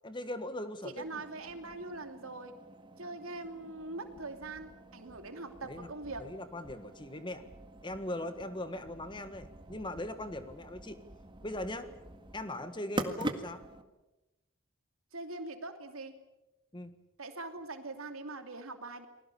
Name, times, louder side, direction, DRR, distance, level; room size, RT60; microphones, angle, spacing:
voice 1, 0.0-1.2 5.6-5.9 6.2-7.5 7.8-11.0 11.4-11.9 12.3-13.6 16.7-17.0, left 1 dB, 20° left, 10 dB, 1.5 m, -40 dB
voice 2, 0.8-2.5 3.0-6.2 15.1-16.1 17.2-19.1, right 2 dB, 80° right, 6 dB, 2.8 m, -42 dB
sound 1, 1.0-13.8, right 1 dB, 25° right, 1.8 m, -45 dB
29.5 x 20.5 x 7.0 m, 1.0 s
head